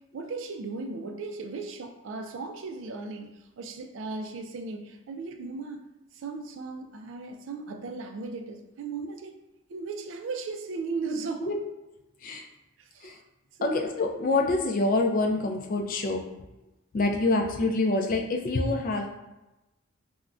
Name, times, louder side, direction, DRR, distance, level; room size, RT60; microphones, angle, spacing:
voice 1, 0.1-5.8 6.1-9.3 9.7-11.5 12.9-13.1 13.6-13.9, right 3 dB, 60° right, 5 dB, 0.3 m, -36 dB
voice 2, 13.6-16.2 16.9-19.1, left 2 dB, 40° left, 3 dB, 0.3 m, -26 dB
3.6 x 2.1 x 2.3 m, 0.99 s
head